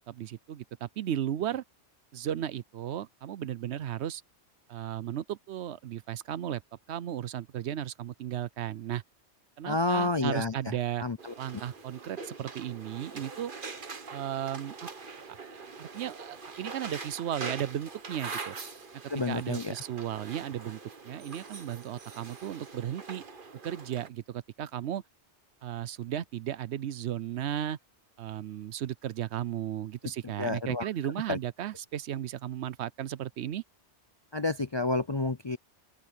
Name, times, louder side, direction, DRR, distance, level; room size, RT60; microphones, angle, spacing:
voice 1, 0.0-1.6 2.1-4.2 4.7-6.6 6.9-9.0 9.6-11.0 11.4-13.5 14.1-14.9 15.3-18.6 19.3-23.2 23.6-25.0 25.6-27.8 28.2-33.6, right 11 dB, 70° right, 0.9 m, -35 dB
voice 2, 9.6-10.5 11.0-11.3 19.1-19.7 30.4-30.9 31.3-31.4 34.3-35.6, left 2 dB, 35° left, 0.4 m, -29 dB
sound 1, 11.2-24.1, right 4 dB, 45° right, 1.6 m, -43 dB
open air
omnidirectional pair, 1.2 m